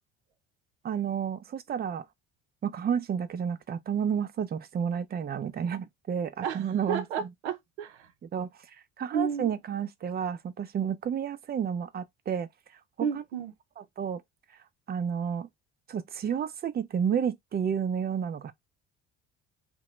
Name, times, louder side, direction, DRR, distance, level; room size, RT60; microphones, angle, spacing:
voice 1, 0.8-2.1 2.6-7.3 8.3-8.5 9.0-12.5 14.0-14.2 14.9-15.5 15.9-18.5, right 7 dB, 30° right, 0.5 m, -31 dB
voice 2, 6.4-8.1 9.1-9.5 13.0-13.5, right 7 dB, 80° right, 0.6 m, -32 dB
2.8 x 2.2 x 3.0 m
hypercardioid pair, 60°, 34 cm